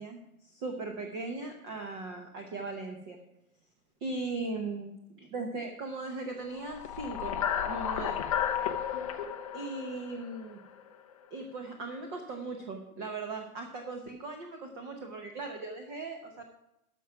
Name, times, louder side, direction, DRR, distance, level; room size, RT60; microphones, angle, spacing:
voice 1, 0.0-3.2 4.0-4.9 5.2-7.4 7.6-8.2 9.5-10.6 11.3-16.4, right 3 dB, 20° right, 3 dB, 0.8 m, -38 dB
sound 1, 6.7-11.0, left 9 dB, 25° left, 0.5 m, -33 dB
12.5 x 6.0 x 5.9 m, 0.84 s
hypercardioid pair, 155°, 44 cm